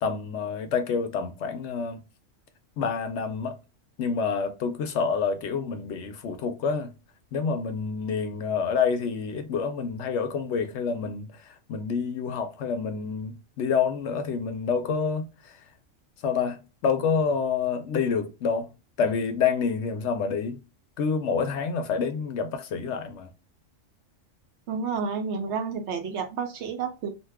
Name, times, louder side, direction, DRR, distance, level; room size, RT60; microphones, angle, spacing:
voice 1, 0.0-2.0 2.8-3.5 4.0-6.9 7.3-15.3 16.2-18.7 19.0-20.6 21.0-23.3, left 5 dB, 70° left, 0.8 m, -28 dB
voice 2, 24.7-27.1, right 5 dB, 65° right, 0.8 m, -30 dB
2.6 x 2.2 x 3.4 m
omnidirectional pair, 1.3 m